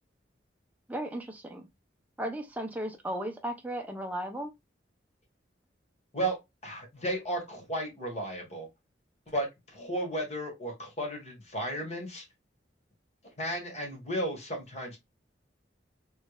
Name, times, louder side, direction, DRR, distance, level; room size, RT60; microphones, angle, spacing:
voice 1, 0.9-1.7 2.2-4.5, right 1 dB, 10° right, 0.6 m, -35 dB
voice 2, 6.1-8.7 9.3-9.5 9.7-12.2 13.4-15.0, right 1 dB, 35° left, 1.4 m, -34 dB
3.2 x 3.1 x 2.3 m
head